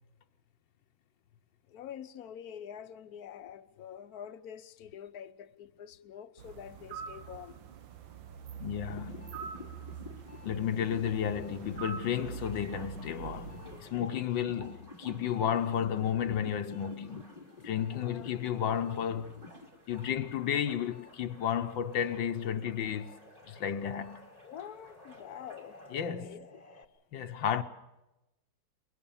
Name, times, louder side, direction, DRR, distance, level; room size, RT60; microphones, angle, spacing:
voice 1, 1.7-7.6 17.9-18.5 24.4-25.8 26.2-26.6, left 9 dB, 60° left, 1.3 m, -46 dB
sound 1, 6.4-13.8, right 7 dB, 80° right, 1.9 m, -44 dB
voice 2, 8.5-9.3 10.4-17.3 17.6-19.4 19.9-23.2 23.5-24.2 25.9-26.4 27.1-27.6, left 9 dB, 80° left, 1.7 m, -32 dB
sound 2, 8.8-20.1 20.5-26.8, left 3 dB, 25° left, 1.3 m, -51 dB
sound 3, 12.1-26.1, right 1 dB, 35° right, 3.3 m, -58 dB
22.5 x 22.0 x 7.1 m
omnidirectional pair, 2.0 m